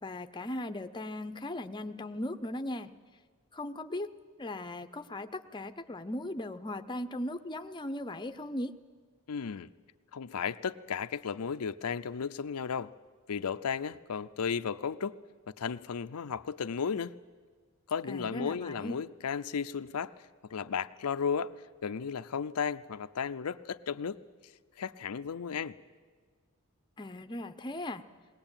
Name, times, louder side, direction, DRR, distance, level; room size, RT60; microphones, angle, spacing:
voice 1, 0.0-2.9 3.5-4.1 4.4-8.7 18.1-19.0 27.0-28.0, left 1 dB, 20° left, 9 dB, 0.7 m, -38 dB
voice 2, 9.3-9.7 10.1-12.9 13.3-15.2 15.6-17.2 17.9-20.1 20.5-21.5 21.8-24.2 24.8-25.8, left 6 dB, 85° left, 11 dB, 0.5 m, -34 dB
20.5 x 18.5 x 8.9 m, 1.5 s
head